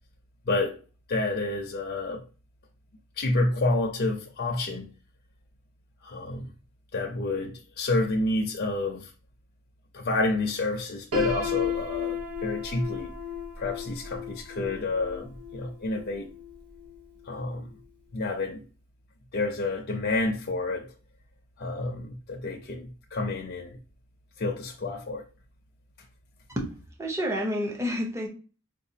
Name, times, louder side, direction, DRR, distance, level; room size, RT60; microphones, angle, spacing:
voice 1, 0.5-0.8 1.1-2.2 3.2-4.9 6.0-6.5 6.9-9.1 9.9-13.1 13.6-16.3 17.3-17.7 18.1-18.6 19.3-20.9 21.6-23.8 24.4-25.2, left 2 dB, 45° left, 0.5 m, -29 dB
Piano, 11.1-17.0, left 6 dB, 80° right, 0.9 m, -34 dB
voice 2, 26.6-28.3, equal, 15° right, 0.7 m, -29 dB
4.0 x 2.3 x 2.7 m
head